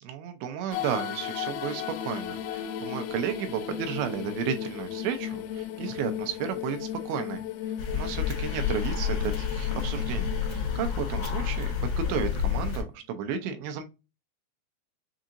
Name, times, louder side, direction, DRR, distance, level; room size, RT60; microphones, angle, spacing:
voice 1, 0.0-11.7 12.1-13.8, right 8 dB, 85° right, 3.0 m, -33 dB
sound 1, 0.7-12.5, left 10 dB, 80° left, 2.9 m, -36 dB
sound 2, 7.8-12.8, left 7 dB, 60° left, 2.1 m, -29 dB
7.1 x 2.8 x 2.5 m
omnidirectional pair, 5.1 m